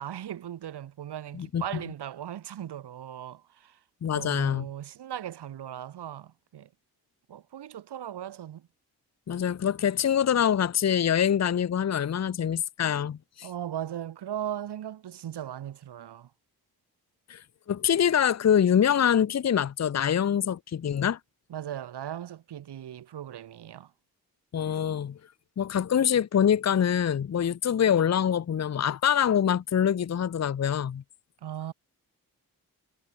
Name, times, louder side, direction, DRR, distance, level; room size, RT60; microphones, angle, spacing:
voice 1, 0.0-3.8 4.1-6.7 7.3-8.7 13.4-16.3 21.5-23.9 31.4-31.7, right 10 dB, 90° right, 3.2 m, -38 dB
voice 2, 4.0-4.7 9.3-13.5 17.3-21.2 24.5-25.2 25.6-31.0, left 8 dB, 40° left, 0.7 m, -25 dB
cardioid pair, 50°, 39 cm